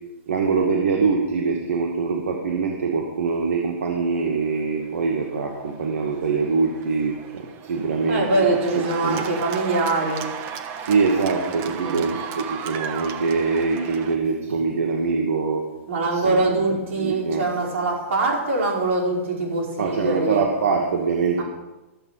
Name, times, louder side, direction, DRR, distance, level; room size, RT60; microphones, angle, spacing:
voice 1, 0.3-8.4 9.0-9.2 10.8-15.6 16.1-16.4 17.0-17.4 19.8-21.4, right 4 dB, 85° right, 1 dB, 2.1 m, -23 dB
Cheering / Applause, 4.5-14.2, right 7 dB, 30° right, 1.1 m, -36 dB
voice 2, 8.1-10.3 11.8-12.1 15.9-20.4 21.4-21.5, right 2 dB, 65° right, -1 dB, 5.1 m, -23 dB
13.5 x 8.0 x 5.8 m, 1.1 s
hypercardioid pair, 150°, 7 cm